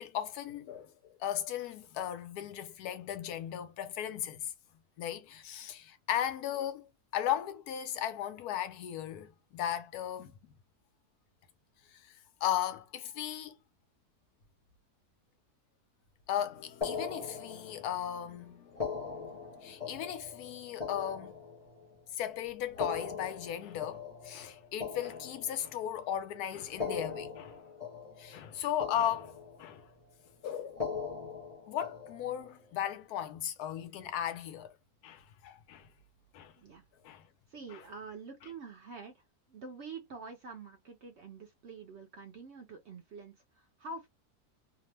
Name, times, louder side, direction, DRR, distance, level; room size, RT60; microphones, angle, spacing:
voice 1, 0.0-4.5 5.0-10.3 11.9-12.1 12.4-13.6 16.3-18.5 19.6-21.4 22.1-27.6 28.2-29.8 30.4-30.9 31.7-34.7 35.0-35.9 36.3-36.5 37.0-37.2, left 10 dB, 85° left, 1.1 m, -36 dB
sound 1, 16.4-22.0, left 7 dB, 65° left, 0.9 m, -58 dB
sound 2, 16.8-18.0 18.7-22.0 22.7-26.0 26.7-28.5 28.8-29.9 30.7-32.5, left 5 dB, 30° left, 0.6 m, -40 dB
voice 2, 37.5-44.1, right 4 dB, 65° right, 0.7 m, -47 dB
2.8 x 2.0 x 3.1 m
omnidirectional pair, 1.6 m